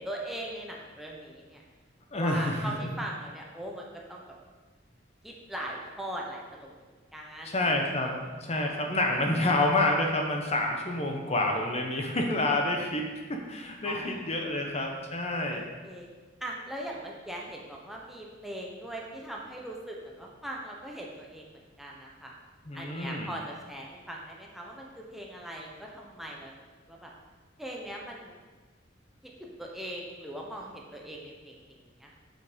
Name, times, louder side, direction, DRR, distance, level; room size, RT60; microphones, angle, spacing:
voice 1, 0.0-1.6 2.1-4.4 5.2-7.7 13.8-14.7 15.5-16.1 16.4-22.3 22.7-26.5 26.9-27.1 27.6-28.4 29.2-32.2, right 1 dB, ahead, -2 dB, 1.1 m, -40 dB
voice 2, 2.1-2.7 7.4-15.6 22.7-23.3, left 2 dB, 35° left, 2 dB, 1.1 m, -28 dB
8.5 x 6.0 x 5.2 m, 1.3 s
head